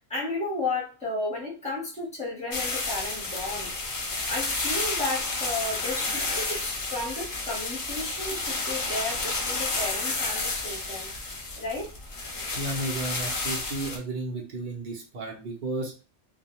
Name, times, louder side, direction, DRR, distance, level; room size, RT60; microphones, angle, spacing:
voice 1, 0.0-3.8 4.3-11.1 11.6-11.9, left 2 dB, 5° left, -4 dB, 0.8 m, -33 dB
sound 1, 2.5-14.0, left 3 dB, 50° left, 0.4 m, -31 dB
voice 2, 12.5-15.9, right 2 dB, 50° right, -1 dB, 0.8 m, -33 dB
2.3 x 2.1 x 2.9 m, 0.34 s
omnidirectional pair, 1.2 m